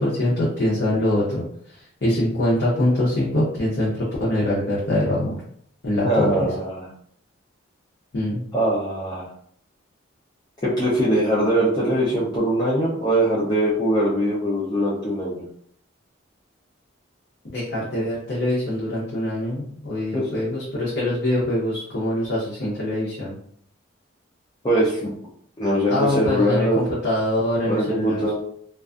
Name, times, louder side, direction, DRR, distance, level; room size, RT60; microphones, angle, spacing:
voice 1, 0.0-5.4 5.8-6.5 8.1-8.4 17.4-23.3 25.9-28.3, left 1 dB, 55° left, -8 dB, 0.7 m, -24 dB
voice 2, 6.0-6.9 8.5-9.3 10.6-15.4 20.1-20.3 24.6-25.1 25.6-26.9 27.7-28.3, right 1 dB, 20° left, -8 dB, 0.5 m, -22 dB
2.4 x 2.3 x 2.4 m, 0.63 s
head